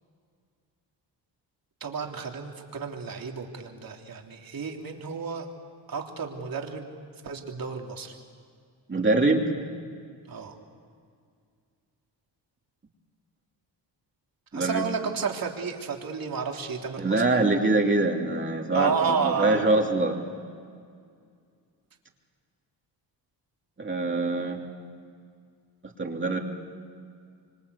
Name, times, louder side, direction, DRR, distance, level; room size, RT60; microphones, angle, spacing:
voice 1, 1.8-5.5 5.9-6.9 7.2-8.1 10.3-10.5 14.5-17.4 18.7-19.8, right 5 dB, 50° right, 1 dB, 3.4 m, -31 dB
voice 2, 8.9-9.4 14.5-14.9 17.0-20.2 23.8-24.6 25.8-26.4, right 2 dB, 25° right, 0 dB, 2.9 m, -24 dB
26.0 x 25.5 x 8.3 m, 2.2 s
cardioid pair, 110°, 43 cm